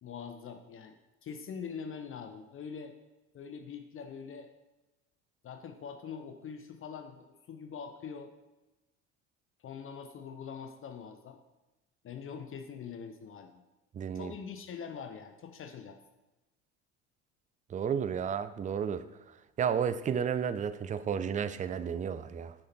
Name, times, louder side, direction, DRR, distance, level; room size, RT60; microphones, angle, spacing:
voice 1, 0.0-1.0 1.2-2.9 3.3-4.5 5.4-8.3 9.6-11.4 12.0-13.6 14.1-16.0, left 6 dB, 35° left, 6 dB, 0.7 m, -43 dB
voice 2, 13.9-14.3 17.7-19.0 19.6-22.5, right 7 dB, 20° right, 12 dB, 0.4 m, -32 dB
6.4 x 5.6 x 4.4 m, 1.1 s
hypercardioid pair, 70°, 35 cm